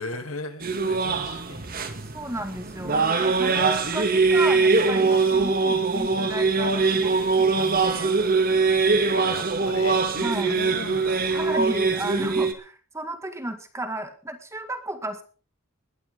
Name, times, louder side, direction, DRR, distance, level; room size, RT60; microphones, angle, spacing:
voice 1, 0.0-1.7 9.1-11.7, left 3 dB, 70° left, 8 dB, 2.6 m, -37 dB
sound 1, 0.6-12.5, right 4 dB, 40° right, 2.1 m, -22 dB
voice 2, 2.1-8.1 10.2-10.5 11.3-15.2, right 1 dB, 15° right, 8 dB, 1.9 m, -33 dB
20.5 x 12.0 x 3.6 m, 0.37 s
head